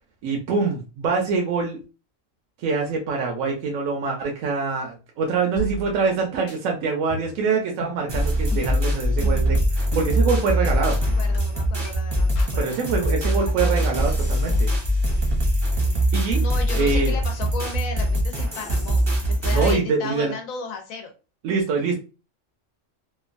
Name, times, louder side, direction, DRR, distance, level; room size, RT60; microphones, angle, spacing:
voice 1, 0.2-1.8 2.6-11.0 12.6-14.7 16.1-16.4 16.8-17.1 19.5-20.3 21.4-22.0, right 4 dB, 85° right, 1 dB, 1.0 m, -24 dB
sound 1, 5.6-6.2 6.5-6.6 7.1-7.5 7.8-8.0 8.5-8.7 9.2-9.5 9.9-10.1 10.6-10.8 11.3-11.4 11.8-11.9 12.4-12.6 13.1-13.2 13.5-13.8 14.2-16.0 18.5-19.1 19.4-19.5, right 2 dB, 55° left, 1.1 m, -38 dB
sound 2, 8.1-19.8, equal, 25° right, 0.6 m, -22 dB
voice 2, 11.2-12.7 13.2-13.4 16.4-21.1, left 5 dB, 90° left, 5 dB, 1.1 m, -35 dB
2.9 x 2.2 x 2.5 m, 0.32 s
omnidirectional pair, 1.4 m